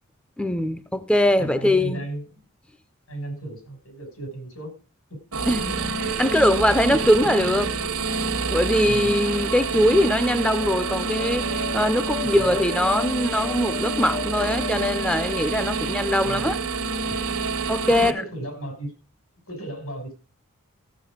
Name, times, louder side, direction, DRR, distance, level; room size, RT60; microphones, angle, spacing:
voice 1, 0.4-2.0 5.5-7.7 8.5-16.6 17.7-18.2, left 1 dB, 5° left, 0.5 m, -22 dB
voice 2, 1.4-2.4 3.1-4.7 5.1-5.2 6.8-7.5 8.8-9.2 12.2-12.6 16.2-16.5 17.9-18.9 19.5-20.1, right 1 dB, 85° left, 6.3 m, -35 dB
sound 1, 5.3-18.1, right 4 dB, 80° right, 1.4 m, -27 dB
sound 2, 9.3-16.1, left 7 dB, 50° left, 1.1 m, -37 dB
14.5 x 7.8 x 5.0 m
head